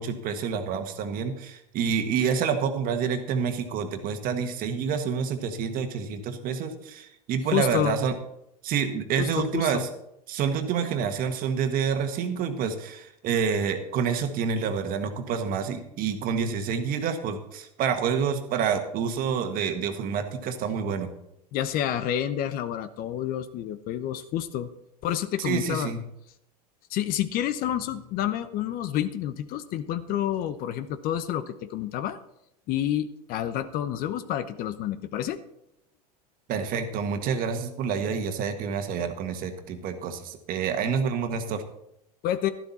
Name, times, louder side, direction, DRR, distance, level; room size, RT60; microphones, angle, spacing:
voice 1, 0.0-8.1 8.6-9.9 10.3-21.1 25.4-26.0 36.5-41.6, right 6 dB, 45° right, 7 dB, 1.6 m, -28 dB
voice 2, 7.5-8.0 9.2-9.9 21.5-24.7 25.0-25.9 26.9-32.2 32.7-35.4 42.2-42.5, left 11 dB, 45° left, 12 dB, 0.9 m, -29 dB
12.0 x 12.0 x 4.2 m, 0.80 s
hypercardioid pair, 105°, 20 cm